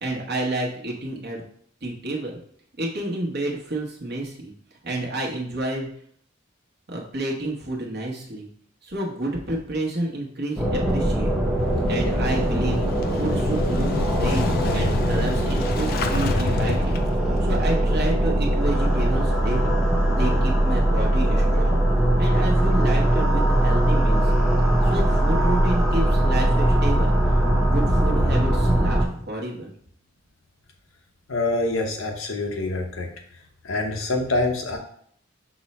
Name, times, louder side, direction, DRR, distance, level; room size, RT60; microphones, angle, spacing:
voice 1, 0.0-1.5 1.8-2.3 2.7-4.5 4.8-5.9 6.9-8.5 8.8-11.3 11.9-12.8 13.1-17.0 17.4-19.8 20.1-21.8 22.2-24.3 24.8-29.7, right 1 dB, 55° right, -1 dB, 1.0 m, -30 dB
sound 1, 10.6-29.0, right 1 dB, ahead, 0.6 m, -21 dB
Motorcycle / Engine starting, 11.6-17.4, left 4 dB, 50° left, 0.3 m, -29 dB
voice 2, 31.3-33.1 33.6-34.8, left 2 dB, 85° left, 2 dB, 0.9 m, -25 dB
6.0 x 2.1 x 4.1 m, 0.62 s
head